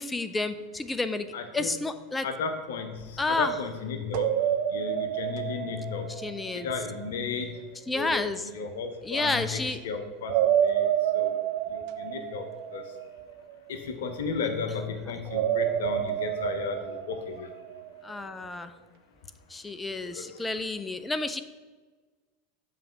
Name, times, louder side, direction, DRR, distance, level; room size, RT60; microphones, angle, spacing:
voice 1, 0.0-2.3 3.2-3.5 6.2-6.7 7.9-8.5 9.0-9.8 18.0-18.7 19.5-21.4, left 3 dB, 15° left, 11 dB, 0.4 m, -30 dB
voice 2, 1.3-1.7 2.2-4.3 4.7-6.1 6.5-7.5 7.9-11.4 11.7-12.5 12.7-12.8 13.7-17.5 20.2-20.4, left 5 dB, 65° left, 7 dB, 0.7 m, -34 dB
sound 1, 4.1-7.1 10.2-13.6 15.3-18.0, right 10 dB, 50° right, 0.4 m, -29 dB
6.9 x 3.2 x 5.9 m, 1.3 s
figure-of-eight pair, 80°, 0 cm